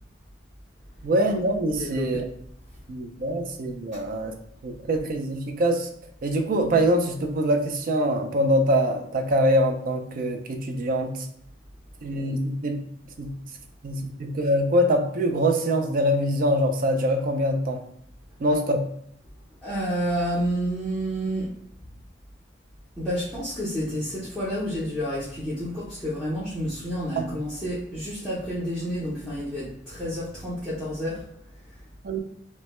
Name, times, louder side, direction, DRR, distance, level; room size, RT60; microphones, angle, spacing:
voice 1, 1.0-2.2 2.9-4.3 4.6-5.9 6.2-11.2 12.0-12.8 13.2-13.3 13.8-17.8 18.4-18.8 27.2-27.3 32.0-32.2, equal, 50° right, 4 dB, 0.3 m, -24 dB
voice 2, 1.8-2.3 3.9-4.0 19.6-21.5 23.0-31.3 31.6-31.7, equal, ahead, -11 dB, 0.6 m, -30 dB
2.1 x 2.1 x 2.9 m, 0.70 s
head